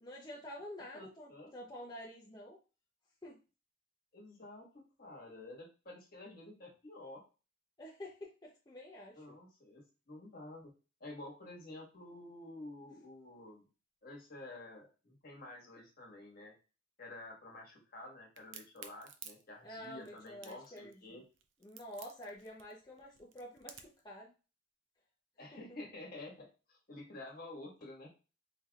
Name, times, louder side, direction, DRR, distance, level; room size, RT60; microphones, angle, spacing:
voice 1, 0.0-2.6 3.2-3.4 7.8-9.2 19.6-21.2 21.6-24.3, left 1 dB, 20° left, -5 dB, 0.7 m, -49 dB
voice 2, 0.9-1.5 4.1-4.7 5.0-7.2 9.1-10.7 11.0-13.7 14.0-16.5 17.0-21.2 25.4-28.1, left 2 dB, 50° left, -1 dB, 1.5 m, -50 dB
Crack, 18.4-24.0, right 8 dB, 70° right, 0.5 m, -53 dB
4.3 x 3.3 x 2.4 m, 0.33 s
head